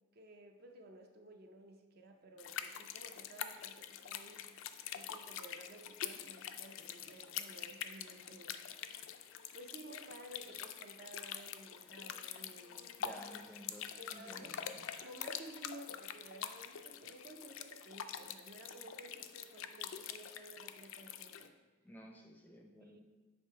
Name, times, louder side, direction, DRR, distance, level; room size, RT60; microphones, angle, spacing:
voice 1, 0.1-4.4 4.9-8.6 9.5-13.4 14.0-14.6 15.0-21.5 22.8-23.0, right 1 dB, 50° right, 4 dB, 0.5 m, -55 dB
sound 1, 2.4-21.5, left 9 dB, 70° left, 0.3 m, -46 dB
voice 2, 13.0-13.8 14.1-14.8 21.8-23.0, equal, 10° left, 1 dB, 0.5 m, -54 dB
6.4 x 3.3 x 4.5 m, 1.2 s
head